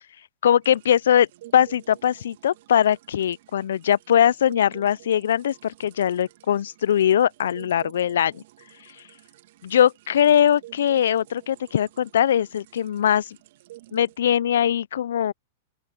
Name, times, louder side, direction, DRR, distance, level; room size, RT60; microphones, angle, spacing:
voice 1, 0.4-1.3 1.5-8.4 9.6-13.4 13.9-15.3, left 10 dB, 75° left, 0.4 m, -21 dB
sound 1, 0.6-14.2, right 16 dB, 60° right, 2.1 m, -50 dB
open air
hypercardioid pair, 110°, 0 cm